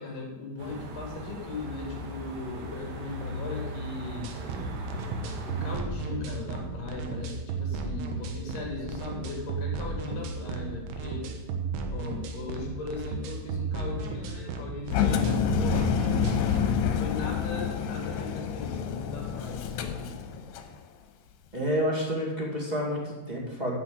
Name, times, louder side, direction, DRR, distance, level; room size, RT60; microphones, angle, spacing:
voice 1, 0.0-4.3 5.4-11.3 11.9-16.5 16.8-20.1, left 3 dB, 55° left, 0 dB, 3.8 m, -38 dB
sound 1, 0.6-5.8, equal, 60° right, 2.7 m, -39 dB
sound 2, 4.2-16.8, right 4 dB, 80° right, 3.3 m, -34 dB
Engine, 14.9-20.7, left 7 dB, 85° left, 3.0 m, -28 dB
voice 2, 21.5-23.7, equal, 20° right, -3 dB, 1.1 m, -29 dB
10.0 x 6.3 x 8.5 m, 1.1 s
omnidirectional pair, 4.9 m